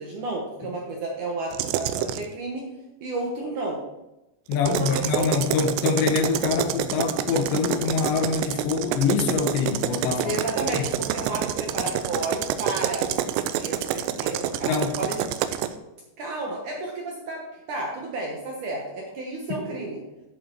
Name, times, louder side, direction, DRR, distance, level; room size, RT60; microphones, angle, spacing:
voice 1, 0.0-2.7 3.0-3.8 4.6-5.3 10.2-15.2 16.2-20.0, right 2 dB, 65° right, -1 dB, 2.1 m, -32 dB
sound 1, 1.5-2.3 4.5-15.7, right 11 dB, 85° right, 2.8 m, -28 dB
voice 2, 4.5-10.4 10.8-10.9 14.7-14.9, left 5 dB, 80° left, 5 dB, 3.3 m, -25 dB
10.5 x 7.5 x 4.6 m, 0.95 s
omnidirectional pair, 5.1 m